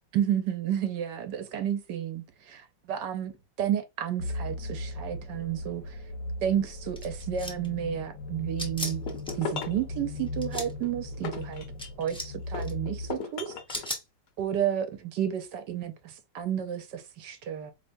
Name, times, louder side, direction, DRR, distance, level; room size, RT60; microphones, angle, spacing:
voice 1, 0.1-3.3 3.6-6.0 6.4-11.7 12.0-13.5 14.4-17.7, right 10 dB, 75° right, 1.3 m, -31 dB
sound 1, 4.2-13.1, left 2 dB, 85° left, 1.4 m, -38 dB
sound 2, 7.0-7.7 8.6-9.3 10.3-10.7 11.8-12.3 12.6-12.7 13.7-14.0, equal, 5° left, 0.5 m, -36 dB
sound 3, 8.8-9.9 10.6-12.1 12.5-13.9, left 5 dB, 70° left, 1.4 m, -37 dB
4.4 x 3.4 x 2.5 m
omnidirectional pair, 2.0 m